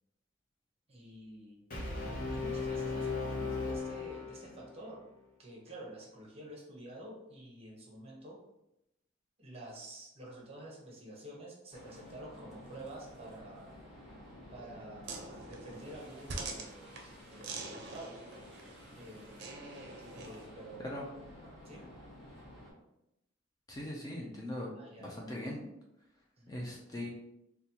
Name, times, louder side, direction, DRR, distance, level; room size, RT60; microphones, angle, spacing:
voice 1, 0.9-1.6 2.3-5.0 5.4-8.4 9.4-13.7 14.5-18.2 18.9-19.5 20.1-21.0 21.6-21.9 24.7-25.3 26.4-26.6, right 1 dB, 35° right, -2 dB, 0.9 m, -49 dB
Brass instrument, 1.7-4.8, left 3 dB, 45° left, 0.8 m, -37 dB
sound 1, 11.7-22.7, equal, ahead, 1.2 m, -53 dB
sound 2, 15.0-20.5, right 3 dB, 60° right, 0.6 m, -45 dB
voice 2, 23.7-24.7 25.0-25.7 26.5-27.1, left 1 dB, 20° left, -2 dB, 0.5 m, -40 dB
4.1 x 2.3 x 2.8 m, 0.86 s
head